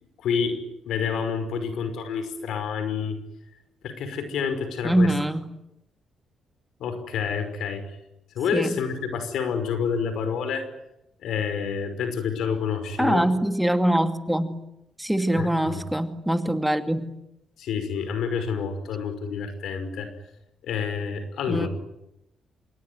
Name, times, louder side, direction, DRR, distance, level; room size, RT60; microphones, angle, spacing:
voice 1, 0.2-3.2 3.8-5.1 6.8-7.8 8.4-10.7 11.2-13.3 15.3-15.8 17.6-20.1 20.6-21.7, left 6 dB, 80° left, 10 dB, 5.4 m, -28 dB
voice 2, 4.8-5.5 8.5-8.7 13.0-14.6 15.0-17.1 21.5-21.7, right 1 dB, 5° right, 7 dB, 2.5 m, -23 dB
27.0 x 23.0 x 9.6 m, 0.87 s
cardioid pair, 75°, 0 cm